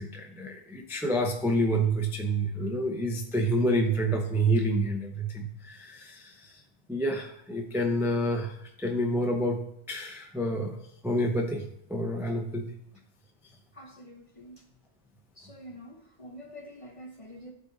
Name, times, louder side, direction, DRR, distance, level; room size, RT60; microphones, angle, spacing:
voice 1, 0.0-6.6 6.9-10.8 11.0-12.7, right 1 dB, 5° right, 2 dB, 0.5 m, -28 dB
voice 2, 13.7-14.6 15.4-17.5, equal, 35° left, 4 dB, 0.7 m, -47 dB
11.5 x 3.9 x 3.9 m, 0.72 s
omnidirectional pair, 1.2 m